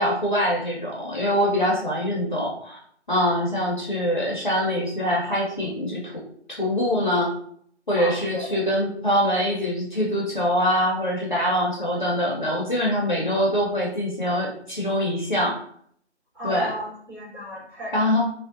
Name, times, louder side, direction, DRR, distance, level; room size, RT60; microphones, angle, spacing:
voice 1, 0.0-2.8 3.1-6.2 6.6-7.3 7.9-15.6 16.4-16.7 17.9-18.2, equal, 45° left, -3 dB, 0.5 m, -24 dB
voice 2, 7.9-8.6 16.3-18.0, left 1 dB, 20° right, -12 dB, 1.4 m, -34 dB
2.6 x 2.0 x 2.5 m, 0.62 s
figure-of-eight pair, 155°, 35 cm